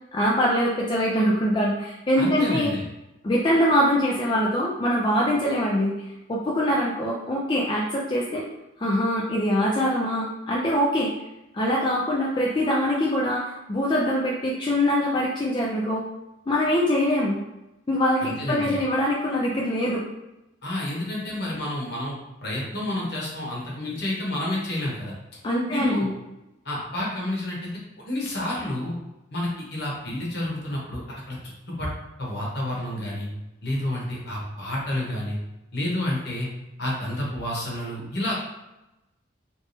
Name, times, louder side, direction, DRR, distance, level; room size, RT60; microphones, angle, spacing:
voice 1, 0.1-2.7 3.2-8.4 8.8-11.1 11.5-16.0 16.5-17.4 17.9-20.0 25.4-26.1, equal, 25° left, -4 dB, 0.4 m, -23 dB
voice 2, 2.2-2.8 18.2-18.8 20.6-25.1 25.7-26.1 26.6-27.7 28.0-28.9 29.3-31.4 31.7-31.9 32.2-33.3 33.6-35.4 35.7-36.5 36.8-38.3, left 1 dB, 60° left, -4 dB, 1.1 m, -29 dB
3.2 x 2.8 x 3.3 m, 0.95 s
head